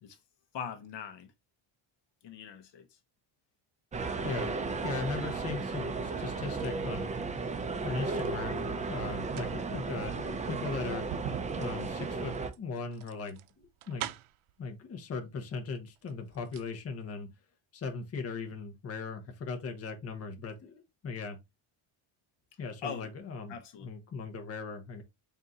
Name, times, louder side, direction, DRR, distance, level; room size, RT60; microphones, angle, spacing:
voice 1, 0.5-1.3 2.2-2.9 22.8-23.1 23.5-23.9, left 7 dB, 55° left, 0.8 m, -41 dB
sound 1, 3.9-12.5, right 4 dB, 15° right, 0.3 m, -34 dB
voice 2, 4.8-7.1 7.8-11.0 11.6-14.1 14.6-17.3 17.7-21.4 22.6-23.5 23.8-25.0, left 4 dB, 30° left, 0.8 m, -38 dB
sound 2, 7.6-8.4 9.1-14.5 15.5-15.6 15.9-16.7 17.0-17.1, right 13 dB, 75° right, 0.6 m, -44 dB
3.9 x 2.7 x 3.5 m
cardioid pair, 135°, 49 cm